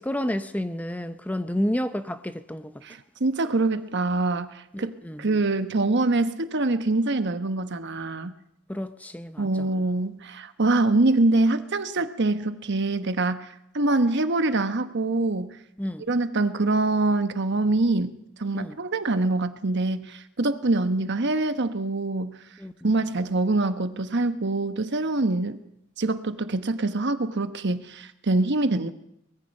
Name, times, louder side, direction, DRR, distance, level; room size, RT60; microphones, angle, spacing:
voice 1, 0.0-2.7 4.7-5.2 8.7-9.5 15.8-16.0 18.5-18.8 22.6-22.7, equal, 10° left, 0.7 m, -30 dB
voice 2, 2.8-8.3 9.4-15.6 16.0-22.4 22.8-25.6 26.0-28.9, right 2 dB, 60° right, 1.2 m, -25 dB
24.0 x 20.5 x 5.4 m
head